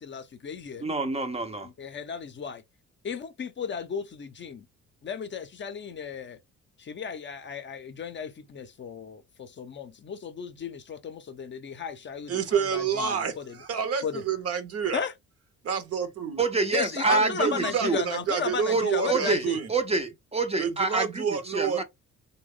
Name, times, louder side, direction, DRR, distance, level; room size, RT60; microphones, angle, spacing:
voice 1, 0.0-0.8 1.6-2.6 3.0-4.7 5.0-6.4 6.8-13.5 14.0-14.2 14.9-15.1 16.7-19.6, left 6 dB, 40° left, 0.5 m, -35 dB
voice 2, 0.8-1.7 16.4-18.0 18.7-21.8, right 3 dB, 20° right, 0.5 m, -27 dB
voice 3, 12.3-15.0 15.6-16.4 17.1-19.7 20.6-21.8, right 7 dB, 55° right, 0.7 m, -28 dB
3.0 x 2.2 x 3.5 m
cardioid pair, 90°, 30 cm